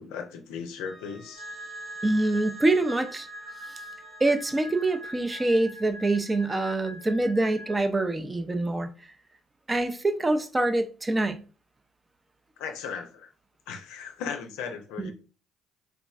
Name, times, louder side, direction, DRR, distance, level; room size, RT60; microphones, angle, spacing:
voice 1, 0.0-1.5 12.6-13.3 13.7-15.1, left 6 dB, 75° left, 0.5 m, -37 dB
Wind instrument woodwind instrument, 0.9-5.5, right 2 dB, ahead, 0.8 m, -53 dB
sound 1, 1.3-7.8, equal, 85° right, 1.8 m, -42 dB
voice 2, 2.0-3.3 3.7-3.8 4.2-8.9 9.7-11.4 15.0-15.1, right 2 dB, 20° right, 0.5 m, -25 dB
3.5 x 3.0 x 2.3 m
hypercardioid pair, 55°, 0 cm